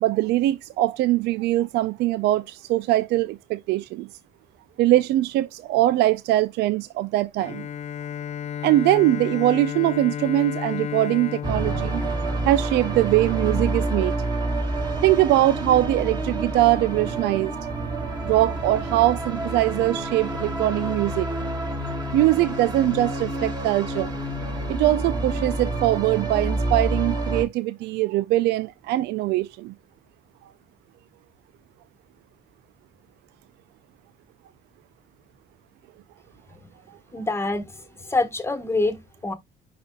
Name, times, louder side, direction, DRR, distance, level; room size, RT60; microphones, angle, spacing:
voice 1, 0.0-4.1 4.8-7.7 8.6-12.0 12.4-14.2 15.0-17.7 18.2-21.3 22.1-24.1 24.7-29.7 36.9-37.0, right 15 dB, 80° right, 0.4 m, -22 dB
Bowed string instrument, 7.4-13.1, left 8 dB, 40° left, 0.6 m, -33 dB
sound 1, 11.4-27.4, right 2 dB, 25° right, 2.2 m, -28 dB
voice 2, 37.1-39.3, left 2 dB, 15° left, 1.3 m, -26 dB
10.5 x 4.2 x 2.2 m
cardioid pair, 110°, 17 cm